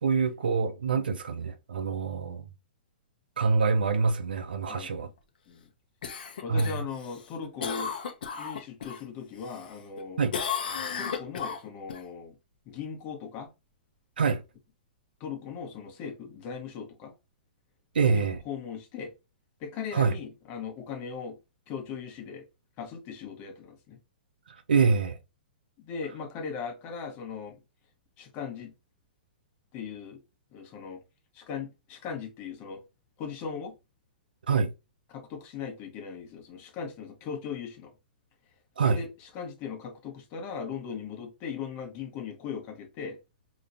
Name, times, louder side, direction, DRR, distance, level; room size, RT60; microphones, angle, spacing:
voice 1, 0.0-2.5 3.4-5.1 6.5-6.7 10.2-10.3 14.2-14.4 17.9-18.4 19.9-20.1 24.7-25.2 34.5-34.7 38.8-39.0, right 5 dB, 75° right, 0.8 m, -25 dB
voice 2, 4.7-5.1 5.5-5.7 6.4-7.9 8.4-10.2 10.9-12.3 12.7-13.5 15.2-17.1 18.1-19.1 19.6-21.4 21.7-22.5 22.8-24.0 25.8-27.6 28.2-28.7 29.7-30.2 30.5-31.0 31.3-32.8 33.2-33.7 35.1-37.9 38.8-43.2, left 6 dB, 35° left, 1.3 m, -38 dB
Cough, 6.0-9.0 9.4-10.0 10.3-12.0 16.4-16.5, left 7 dB, 65° left, 0.9 m, -34 dB
5.0 x 3.1 x 2.7 m
hypercardioid pair, 120°, 5 cm